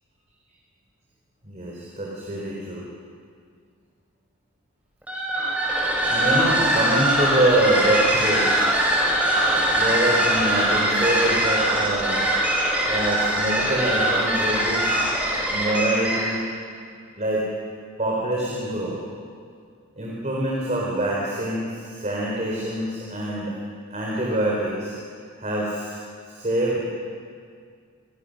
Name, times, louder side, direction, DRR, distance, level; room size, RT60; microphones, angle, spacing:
voice 1, 1.4-2.8 6.1-8.7 9.7-15.0 15.5-16.5 17.2-17.4 18.0-19.0 20.0-23.5 23.9-25.0 25.4-26.0 26.3-26.8, right 1 dB, 30° right, -4 dB, 4.2 m, -25 dB
sound 1, 5.0-16.4, right 1 dB, 5° right, 5.5 m, -22 dB
28.0 x 23.0 x 6.6 m, 2.2 s
head